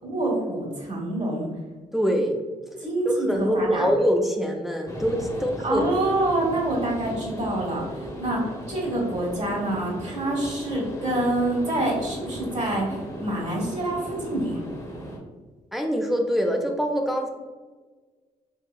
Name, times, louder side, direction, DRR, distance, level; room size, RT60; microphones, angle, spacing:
voice 1, 0.0-1.5 2.8-3.9 5.6-7.9 8.2-14.6, right 1 dB, 40° right, -1 dB, 1.4 m, -26 dB
voice 2, 1.9-2.4 3.1-5.8 15.7-17.3, equal, ahead, 2 dB, 0.6 m, -24 dB
sound 1, 4.9-15.2, equal, 20° left, 1.0 m, -37 dB
3.6 x 2.7 x 2.4 m, 1.3 s
hypercardioid pair, 45°, 18 cm